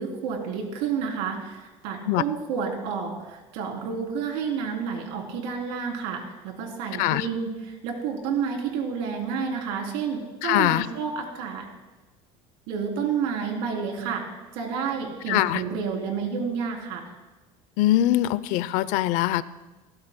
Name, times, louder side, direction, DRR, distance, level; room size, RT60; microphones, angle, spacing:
voice 1, 0.0-11.7 12.7-14.2 14.5-17.1, right 6 dB, 85° right, 1 dB, 3.3 m, -30 dB
voice 2, 10.4-10.9 15.3-15.6 17.8-19.4, left 14 dB, 70° left, 17 dB, 0.5 m, -22 dB
21.5 x 16.0 x 2.2 m, 1.2 s
cardioid pair, 155°, 13 cm